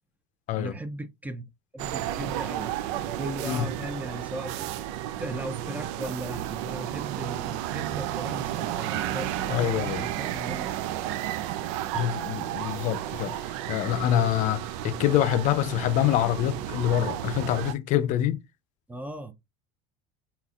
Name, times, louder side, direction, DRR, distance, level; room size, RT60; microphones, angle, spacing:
voice 1, 0.6-1.4 1.7-4.7 5.2-10.7 18.9-19.3, right 1 dB, 10° right, 0.6 m, -38 dB
sound 1, 1.8-17.7, right 12 dB, 75° right, 0.5 m, -32 dB
voice 2, 9.5-10.1 11.9-18.4, left 12 dB, 55° left, 0.6 m, -26 dB
4.1 x 4.1 x 2.4 m
supercardioid pair, 120°, 16 cm